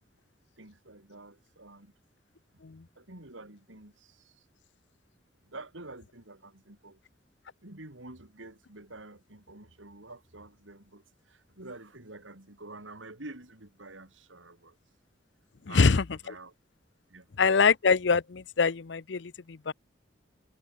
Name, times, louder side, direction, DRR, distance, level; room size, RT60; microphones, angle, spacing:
voice 1, 0.6-1.9 2.5-2.6 3.0-4.5 5.4-7.0 7.6-14.8 15.7-16.5 17.1-17.3, right 2 dB, 85° right, 4.0 m, -48 dB
voice 2, 15.7-16.0 17.4-19.7, left 5 dB, 65° left, 0.6 m, -24 dB
head